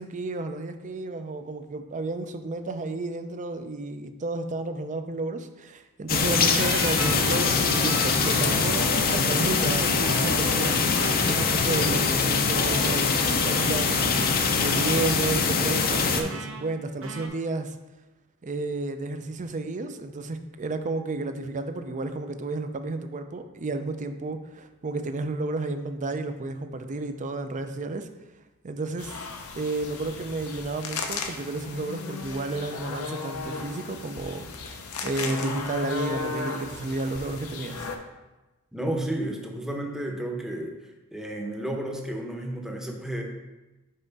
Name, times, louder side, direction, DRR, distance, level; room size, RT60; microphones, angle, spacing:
voice 1, 0.0-10.8 11.3-13.1 13.4-14.1 14.6-17.7 18.4-28.1 28.6-29.2 29.6-37.9, right 2 dB, 35° right, 8 dB, 0.5 m, -32 dB
sound 1, 6.1-16.2, left 5 dB, 40° left, 0.6 m, -23 dB
sound 2, 6.3-9.3 10.0-12.1 12.6-15.4 15.9-16.7 17.0-17.3, right 3 dB, 65° right, 0.8 m, -36 dB
sound 3, 29.0-38.0, left 4 dB, 80° left, 0.7 m, -35 dB
voice 2, 38.7-40.7 41.1-43.2, right 1 dB, ahead, 1 dB, 0.8 m, -32 dB
5.5 x 5.0 x 4.0 m, 1.1 s
head